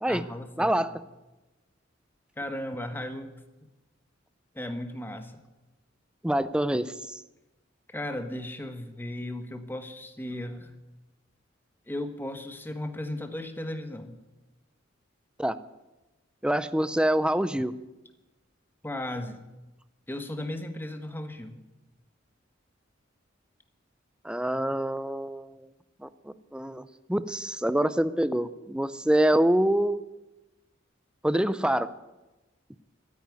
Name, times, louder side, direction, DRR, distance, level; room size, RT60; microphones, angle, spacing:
voice 1, 0.1-0.7 2.4-3.3 4.5-5.5 7.9-10.7 11.9-14.2 18.8-19.4 20.1-21.6, left 1 dB, 10° left, 7 dB, 1.3 m, -36 dB
voice 2, 0.6-0.9 6.2-6.9 15.4-15.6 16.4-17.7 24.2-25.7 26.0-26.1 26.5-26.8 27.1-30.0 31.2-31.9, right 1 dB, 5° right, 15 dB, 0.5 m, -25 dB
13.5 x 9.7 x 9.6 m, 1.1 s
head